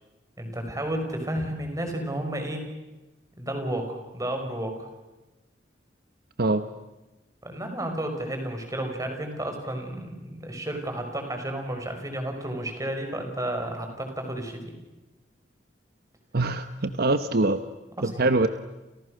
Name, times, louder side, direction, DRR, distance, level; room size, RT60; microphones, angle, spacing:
voice 1, 0.4-2.6 3.4-4.9 7.4-14.8 18.0-18.3, right 1 dB, 20° right, 5 dB, 5.6 m, -32 dB
voice 2, 16.3-17.6 18.0-18.5, right 2 dB, 60° right, 10 dB, 1.1 m, -23 dB
30.0 x 29.5 x 6.6 m, 1.1 s
head